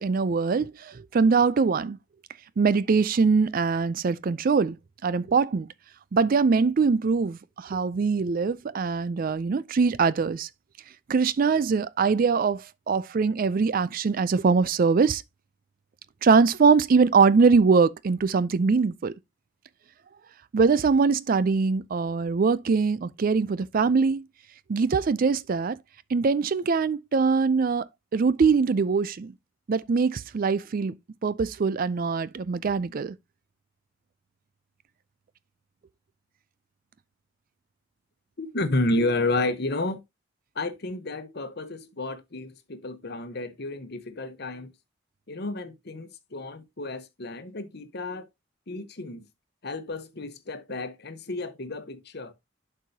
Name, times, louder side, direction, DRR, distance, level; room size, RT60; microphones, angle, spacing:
voice 1, 0.0-2.0 2.6-4.8 5.0-5.7 6.1-10.5 11.1-15.2 16.2-19.1 20.5-24.3 24.7-25.8 26.1-29.3 29.7-31.0 31.2-33.2, right 5 dB, 45° right, 0.4 m, -22 dB
voice 2, 38.4-40.0 40.5-44.7 45.3-48.3 48.7-49.2 49.6-52.3, left 2 dB, 55° left, 1.0 m, -31 dB
11.5 x 4.7 x 2.7 m
head